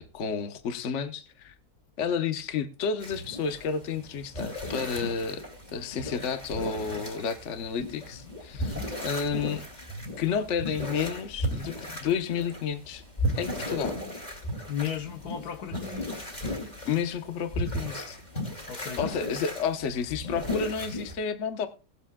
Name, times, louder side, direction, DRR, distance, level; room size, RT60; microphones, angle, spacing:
voice 1, 0.0-1.5 2.0-5.4 5.7-8.8 9.0-9.6 10.2-13.0 13.3-13.9 16.9-18.2 19.0-21.7, left 6 dB, 50° left, 1.2 m, -31 dB
sound 1, 3.0-21.1, equal, 25° left, 2.5 m, -35 dB
voice 2, 8.5-8.9 14.7-16.2 18.7-19.1, left 9 dB, 70° left, 1.5 m, -35 dB
20.0 x 7.3 x 2.3 m
omnidirectional pair, 1.7 m